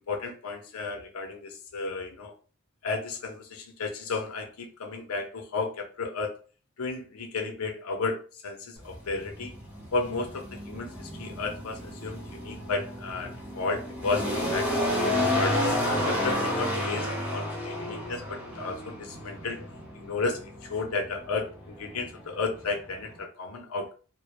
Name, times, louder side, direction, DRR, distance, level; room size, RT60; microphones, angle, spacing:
voice 1, 0.1-2.3 2.8-6.3 6.8-8.2 8.4-9.5 9.9-15.6 16.0-19.6 20.0-20.4 20.7-23.9, left 3 dB, 70° left, 4 dB, 0.5 m, -33 dB
sound 1, 8.8-23.2, left 1 dB, 10° right, 0.6 m, -31 dB
2.0 x 2.0 x 2.9 m, 0.37 s
head